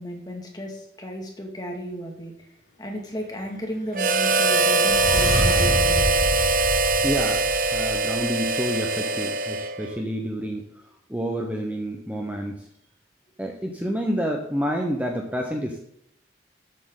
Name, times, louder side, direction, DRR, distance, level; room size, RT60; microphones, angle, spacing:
voice 1, 0.0-2.3 2.8-6.2, equal, 20° left, 1 dB, 2.2 m, -34 dB
Harmonica, 3.9-10.0, right 3 dB, 50° right, 0.8 m, -22 dB
sound 1, 4.0-8.2, equal, 85° left, 3.5 m, -28 dB
voice 2, 7.0-10.7 11.1-12.7 13.4-15.8, equal, 10° right, 1 dB, 1.0 m, -29 dB
13.0 x 8.2 x 4.0 m, 0.73 s
head